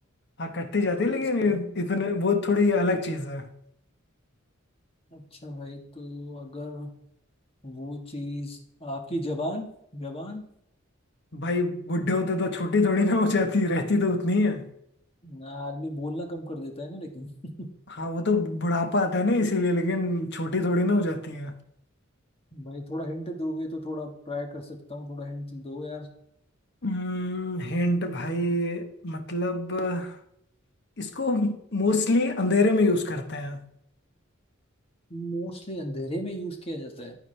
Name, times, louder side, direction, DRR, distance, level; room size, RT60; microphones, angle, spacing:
voice 1, 0.4-3.5 11.3-14.7 17.9-21.6 26.8-30.2 31.0-33.6, left 2 dB, 55° left, 1.1 m, -25 dB
voice 2, 1.1-1.6 5.1-6.9 7.6-10.4 15.2-17.7 22.5-26.1 35.1-37.1, equal, 30° left, 1.6 m, -35 dB
9.7 x 9.6 x 3.3 m
head